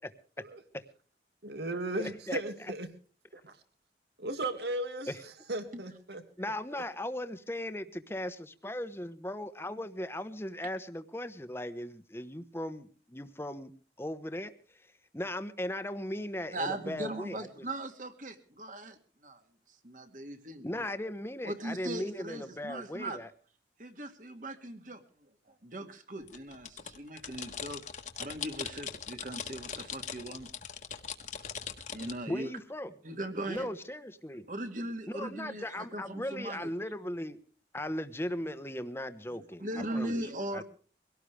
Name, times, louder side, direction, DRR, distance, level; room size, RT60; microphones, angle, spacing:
voice 1, 1.4-2.9 3.3-3.6 4.2-6.2 6.7-6.8, right 2 dB, 70° right, 8 dB, 2.3 m, -36 dB
voice 2, 2.0-2.4 6.4-12.9 13.1-13.7 14.0-14.5 15.1-17.4 20.6-23.3 32.3-32.9 33.5-34.4 35.1-37.4 37.7-39.6 39.9-40.1 40.5-40.6, left 1 dB, 15° left, 11 dB, 1.2 m, -37 dB
voice 3, 16.5-19.0 19.2-19.4 19.8-20.8 21.4-23.2 23.8-25.0 25.5-27.8 28.2-30.5 31.9-32.5 33.0-33.7 34.5-36.7 38.4-38.5 39.3-40.6, right 1 dB, 45° right, 7 dB, 2.2 m, -39 dB
sound 1, 26.2-32.1, left 7 dB, 45° left, 1.6 m, -41 dB
23.5 x 17.5 x 3.4 m, 0.41 s
head